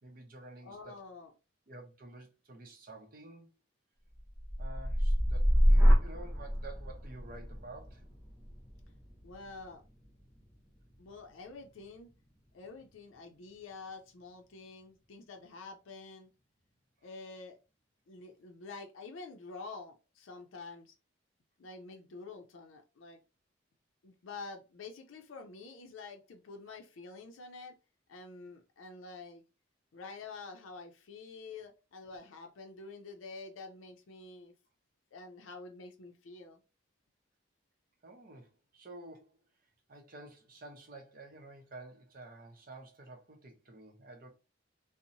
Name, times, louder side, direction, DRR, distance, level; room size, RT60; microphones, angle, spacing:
voice 1, 0.0-1.0 1.7-3.5 4.6-8.0 38.0-39.4 39.9-44.3, right 2 dB, 45° right, 0.6 m, -50 dB
voice 2, 0.6-1.3 9.2-9.8 11.0-12.1 12.5-16.3 17.0-17.6 18.1-20.9 21.6-23.2 24.0-27.8 28.1-29.4 29.9-34.5 35.1-36.6, left 3 dB, 85° left, 0.5 m, -48 dB
sound 1, 4.2-12.2 12.7-13.1, equal, 5° right, 1.0 m, -29 dB
2.6 x 2.0 x 2.7 m
head